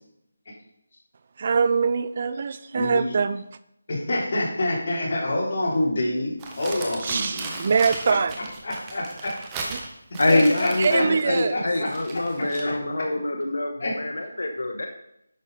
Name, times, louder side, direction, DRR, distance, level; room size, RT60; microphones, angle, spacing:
voice 1, 1.4-3.4 7.0-8.3 9.7-9.8 10.8-11.5, right 5 dB, 40° right, 14 dB, 0.4 m, -23 dB
voice 2, 3.9-7.6 8.1-8.2 8.6-9.3 10.3-11.0 11.5-11.9 13.8-13.9, left 1 dB, 45° left, -5 dB, 3.8 m, -26 dB
Crumpling crinkling, 6.4-12.8, right 3 dB, 15° right, 1.1 m, -37 dB
voice 3, 10.2-14.9, left 2 dB, 75° left, 4 dB, 1.2 m, -24 dB
11.0 x 6.6 x 4.2 m, 0.79 s
figure-of-eight pair, 170°, 0 cm